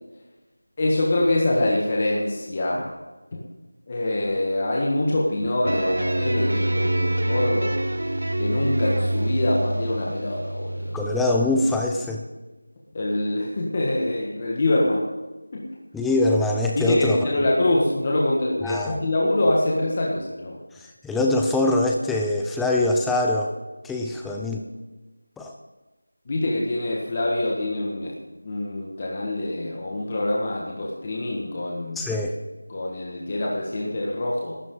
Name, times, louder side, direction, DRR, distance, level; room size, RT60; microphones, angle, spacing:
voice 1, 0.8-2.9 3.3-3.4 3.9-7.8 8.4-11.0 12.9-15.1 15.5-15.7 16.7-20.6 26.3-28.2 28.4-32.1 32.7-34.6, left 1 dB, 25° left, -3 dB, 1.6 m, -25 dB
sound 1, 5.6-11.9, right 1 dB, 65° right, 0.9 m, -26 dB
voice 2, 10.9-12.2 15.9-17.3 18.6-19.0 21.0-23.5 23.8-24.6 25.4-25.5 32.0-32.3, left 2 dB, ahead, 0 dB, 0.5 m, -23 dB
21.0 x 12.5 x 3.8 m, 1.1 s
figure-of-eight pair, 175°, 0 cm